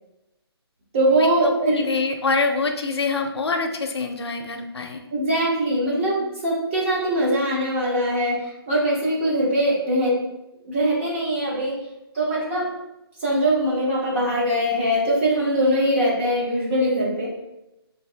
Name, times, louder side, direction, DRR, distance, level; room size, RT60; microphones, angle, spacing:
voice 1, 0.9-1.8 5.1-10.2 10.7-11.8 12.1-12.7 13.2-17.3, right 1 dB, 30° right, -4 dB, 1.0 m, -22 dB
voice 2, 1.6-5.0, left 4 dB, 80° left, 4 dB, 0.6 m, -25 dB
3.3 x 2.6 x 3.3 m, 0.93 s
hypercardioid pair, 165°, 14 cm